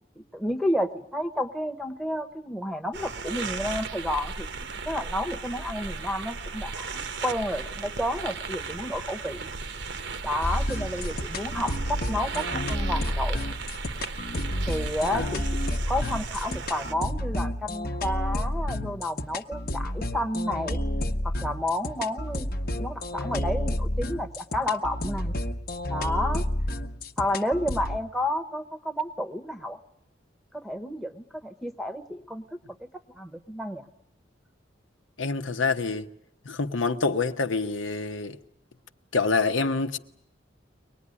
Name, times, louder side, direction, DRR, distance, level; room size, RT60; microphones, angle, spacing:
voice 1, 0.2-9.5 10.2-13.4 14.7-15.4 15.7-20.8 21.2-22.5 22.7-25.3 25.9-26.4 27.2-29.8 30.5-32.6 33.2-33.8, left 1 dB, ahead, 1.0 m, -31 dB
sound 1, 2.9-16.9, right 4 dB, 65° right, 1.0 m, -35 dB
sound 2, 10.4-28.0, left 1 dB, 50° left, 1.0 m, -30 dB
voice 2, 35.2-36.1 36.4-38.4 39.1-40.0, left 4 dB, 85° left, 1.0 m, -26 dB
23.5 x 19.5 x 9.8 m
head